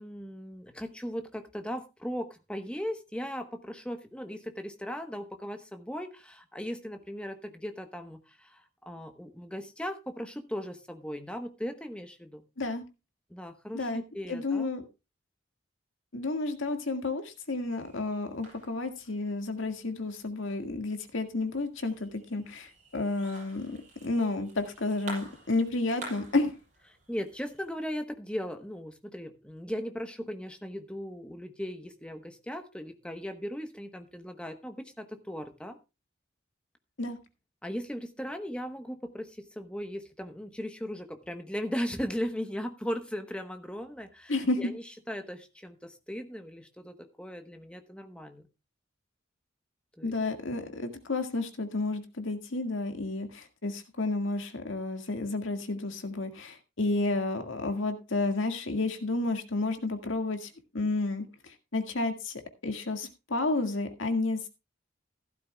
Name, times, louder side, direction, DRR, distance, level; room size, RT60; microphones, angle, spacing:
voice 1, 0.0-12.4 13.3-14.7 27.1-35.8 37.6-48.4 50.0-50.1, equal, 5° left, 7 dB, 1.0 m, -38 dB
voice 2, 14.3-14.8 16.1-26.6 37.0-37.2 44.3-44.7 50.0-64.5, left 2 dB, 80° left, 6 dB, 1.8 m, -31 dB
sound 1, 17.5-27.7, right 2 dB, 40° right, 6.4 m, -50 dB
15.0 x 12.0 x 2.3 m, 0.27 s
head